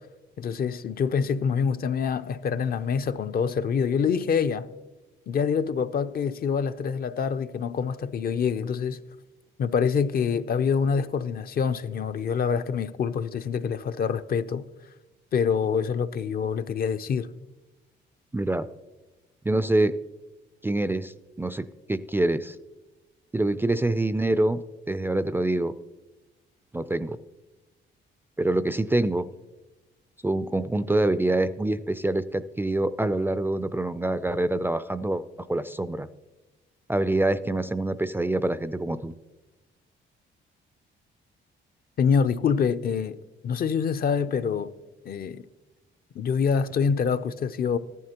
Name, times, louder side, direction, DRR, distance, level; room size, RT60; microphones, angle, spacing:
voice 1, 0.4-4.7 5.3-9.0 9.6-14.7 15.3-17.3 42.0-43.2 43.4-44.7 45.0-45.5 46.1-47.8, left 6 dB, 50° left, 0.5 m, -26 dB
voice 2, 18.3-18.7 19.5-20.0 20.6-22.6 23.3-24.6 24.9-25.7 26.7-27.2 28.4-29.3 30.2-35.2 35.5-36.1 36.9-39.2, right 2 dB, 10° right, 0.3 m, -25 dB
13.5 x 11.0 x 2.9 m
cardioid pair, 90°, 20 cm